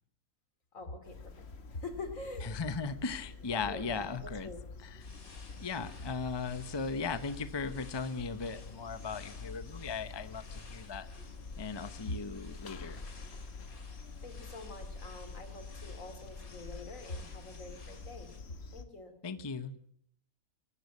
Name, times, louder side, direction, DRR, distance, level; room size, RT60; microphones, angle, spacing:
voice 1, 0.7-2.5 3.5-4.6 12.1-12.2 14.2-18.3 18.7-19.1, left 2 dB, 70° left, 8 dB, 3.3 m, -44 dB
sound 1, 1.0-18.8, left 4 dB, 50° left, 1.5 m, -47 dB
voice 2, 2.4-4.5 4.8-5.0 5.6-11.1 11.6-13.0 19.2-19.8, left 4 dB, 20° left, 13 dB, 0.7 m, -37 dB
sound 2, 5.0-18.4, left 3 dB, 85° left, 3.1 m, -58 dB
24.0 x 13.5 x 8.3 m, 0.66 s
omnidirectional pair, 1.5 m